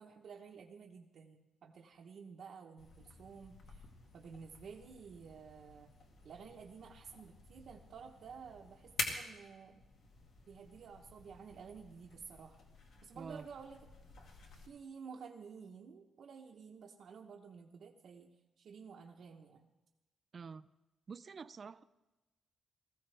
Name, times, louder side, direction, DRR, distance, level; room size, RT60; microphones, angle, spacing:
voice 1, 0.0-3.8 4.1-5.9 6.2-9.8 10.5-12.6 13.0-13.8 14.7-19.7, right 6 dB, 55° right, -2 dB, 1.0 m, -52 dB
sound 1, 2.8-14.7, left 3 dB, 65° left, 2.2 m, -48 dB
voice 2, 13.1-13.5 20.3-20.7 21.1-21.8, right 5 dB, 30° right, 14 dB, 0.4 m, -47 dB
20.5 x 15.0 x 3.4 m, 1.1 s
wide cardioid pair, 175°, 0 cm